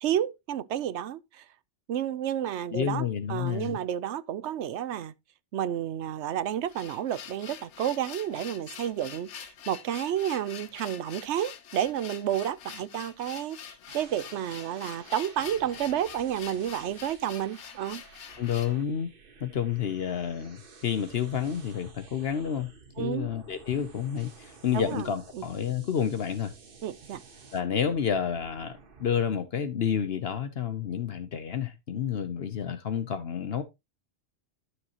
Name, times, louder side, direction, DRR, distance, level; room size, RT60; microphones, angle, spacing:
voice 1, 0.0-1.4 1.9-5.1 5.5-18.0 23.0-23.3 24.7-25.1 25.3-25.4 26.8-27.2, right 10 dB, 75° right, 1.0 m, -31 dB
voice 2, 2.7-3.8 18.4-19.1 19.4-22.7 23.0-26.5 27.5-33.6, left 8 dB, 60° left, 1.0 m, -30 dB
sound 1, 6.4-18.8, left 9 dB, 90° left, 1.1 m, -45 dB
sound 2, 13.9-29.2, right 4 dB, 50° right, 1.4 m, -52 dB
12.5 x 6.4 x 2.9 m
omnidirectional pair, 1.2 m